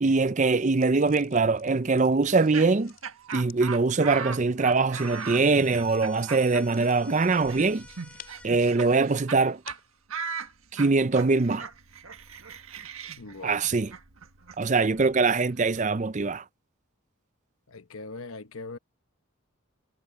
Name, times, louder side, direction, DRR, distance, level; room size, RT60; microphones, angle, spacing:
voice 1, 0.0-2.9 3.3-7.9 8.4-9.6 10.7-11.7 13.4-13.9 14.6-16.4, right 3 dB, 35° right, 0.5 m, -23 dB
sound 1, 0.6-10.0, left 9 dB, 40° left, 4.7 m, -55 dB
Laughter, 2.2-9.4 9.7-9.8 10.1-15.8, right 5 dB, 70° right, 1.5 m, -39 dB
sound 2, 4.9-8.5, left 2 dB, 5° left, 3.6 m, -51 dB
voice 2, 13.2-13.6 17.7-18.8, left 3 dB, 70° left, 1.0 m, -40 dB
head